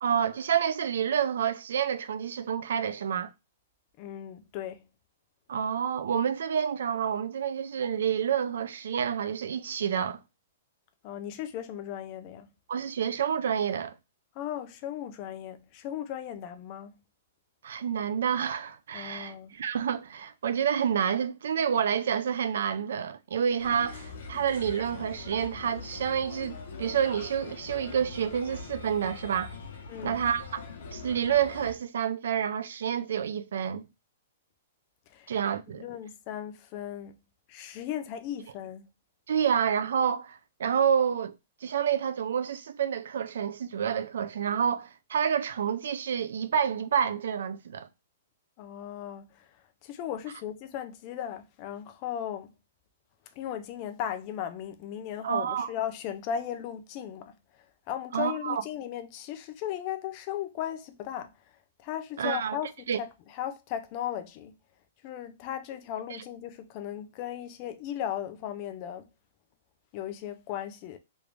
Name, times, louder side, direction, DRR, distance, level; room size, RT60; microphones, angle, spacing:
voice 1, 0.0-3.3 5.5-10.2 12.7-14.0 17.6-29.5 30.0-30.6 30.9-33.9 35.3-35.8 39.3-41.4 41.6-47.9 55.2-55.7 58.1-58.6 62.2-62.6 62.9-63.0, right 8 dB, 70° right, 0.4 m, -28 dB
voice 2, 4.0-4.8 11.0-12.5 14.4-16.9 18.9-19.5 29.9-30.2 35.1-35.3 35.8-37.1 37.5-38.9 48.6-49.5 49.8-52.5 53.4-57.3 57.9-61.3 61.8-64.5 65.0-69.1 69.9-71.0, left 10 dB, 30° left, 0.4 m, -36 dB
Bird, 23.6-31.7, left 4 dB, 65° left, 1.0 m, -42 dB
3.1 x 2.5 x 3.3 m
hypercardioid pair, 170°, 0 cm